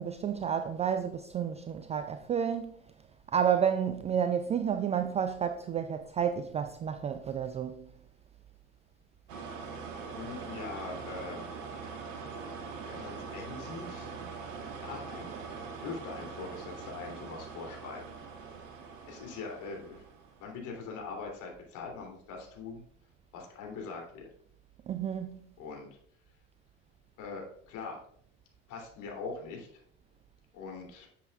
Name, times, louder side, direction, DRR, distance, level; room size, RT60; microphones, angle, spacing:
voice 1, 0.0-2.7 3.3-7.9 24.9-25.4, right 8 dB, 20° right, 0.3 m, -30 dB
sound 1, 9.3-20.5, right 5 dB, 70° right, 1.6 m, -43 dB
voice 2, 10.1-11.4 12.9-14.2 14.8-18.0 19.1-20.0 20.4-22.8 23.3-24.3 25.6-25.9 27.2-28.0 28.7-29.7 30.5-31.1, left 4 dB, 50° left, 3.0 m, -42 dB
10.5 x 7.5 x 2.4 m
figure-of-eight pair, 75°, 40 cm